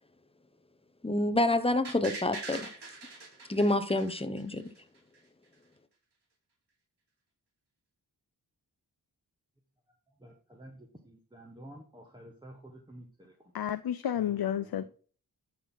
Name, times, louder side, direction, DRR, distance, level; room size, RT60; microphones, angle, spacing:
voice 1, 1.0-2.7 3.5-4.7, left 1 dB, 15° left, 1.0 m, -28 dB
sound 1, 1.8-4.8 5.1-5.2, right 3 dB, 70° right, 2.6 m, -43 dB
voice 2, 10.2-10.7 11.1-13.0, right 1 dB, 10° right, 1.6 m, -50 dB
voice 3, 13.5-14.8, left 10 dB, 60° left, 0.6 m, -31 dB
11.0 x 4.4 x 4.0 m
cardioid pair, 50°, 42 cm